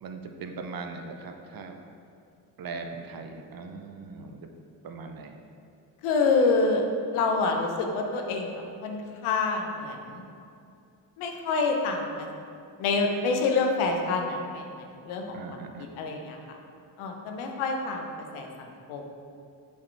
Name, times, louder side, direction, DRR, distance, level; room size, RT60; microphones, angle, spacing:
voice 1, 0.0-1.8 2.6-4.5 4.8-5.4 15.3-15.9, right 4 dB, 45° right, 5 dB, 0.8 m, -40 dB
voice 2, 6.0-6.8 7.1-10.2 11.2-12.3 12.8-15.4 15.8-16.4 17.0-18.1 18.3-19.0, left 4 dB, 75° left, 3 dB, 0.9 m, -27 dB
6.9 x 4.7 x 3.3 m, 2.5 s
hypercardioid pair, 50°, 49 cm